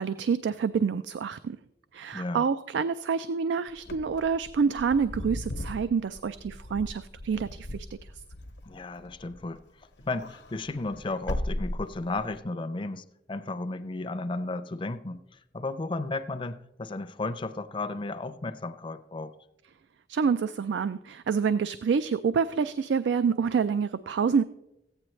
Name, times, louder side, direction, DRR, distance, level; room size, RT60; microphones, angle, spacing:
voice 1, 0.0-1.6 1.9-7.9 20.1-24.4, right 6 dB, 85° right, 13 dB, 0.4 m, -27 dB
voice 2, 2.1-2.5 8.6-9.6 10.1-15.2 15.5-19.3, left 2 dB, 30° left, 10 dB, 0.5 m, -34 dB
Wind / Car, 3.8-9.6 9.9-12.4, left 1 dB, 90° left, 0.9 m, -37 dB
15.0 x 9.0 x 3.2 m, 0.87 s
head